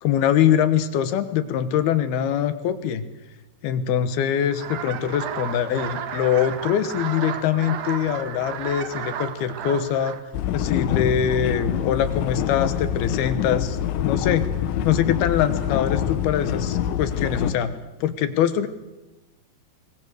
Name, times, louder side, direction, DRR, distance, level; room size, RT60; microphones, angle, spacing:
voice 1, 0.0-3.1 3.6-10.2 10.5-14.5 14.8-18.7, left 9 dB, 70° left, 12 dB, 2.9 m, -23 dB
sound 1, 4.5-10.2, right 8 dB, 60° right, 3.0 m, -33 dB
sound 2, 10.3-17.5, left 9 dB, 85° left, 3.6 m, -25 dB
23.0 x 21.0 x 8.2 m, 1.0 s
omnidirectional pair, 5.2 m